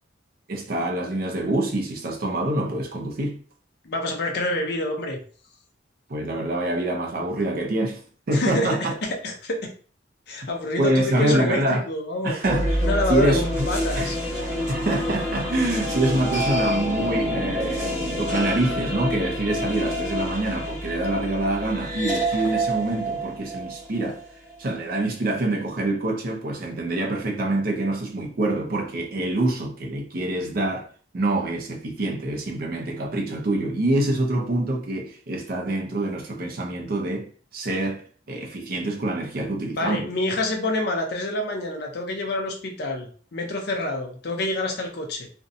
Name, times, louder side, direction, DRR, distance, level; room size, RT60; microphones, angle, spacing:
voice 1, 0.5-3.4 6.1-8.0 8.3-8.9 10.8-11.8 12.2-13.7 14.0-14.1 14.7-24.2 24.6-30.9 31.1-38.0 38.3-40.1, right 1 dB, 50° right, 0.5 m, -26 dB
voice 2, 3.8-5.2 8.3-9.7 10.3-12.4 12.8-14.6 39.7-45.3, left 1 dB, 55° left, 0.6 m, -27 dB
sound 1, 12.4-24.6, equal, 15° left, 0.9 m, -27 dB
2.5 x 2.1 x 2.6 m
head